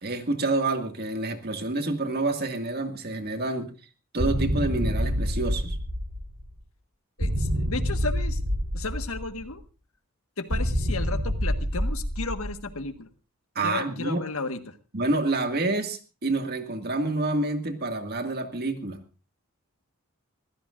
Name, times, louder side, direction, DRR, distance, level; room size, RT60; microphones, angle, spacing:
voice 1, 0.0-3.7 4.1-5.8 13.6-14.2 14.9-19.0, right 2 dB, 45° right, 6 dB, 2.0 m, -28 dB
sound 1, 4.2-6.5 7.2-9.5 10.5-12.8, equal, 75° right, 3.7 m, -27 dB
voice 2, 7.2-8.4 8.7-9.6 10.4-13.1 13.6-14.8, left 3 dB, 75° left, 8 dB, 1.5 m, -34 dB
24.5 x 15.5 x 2.5 m, 0.32 s
head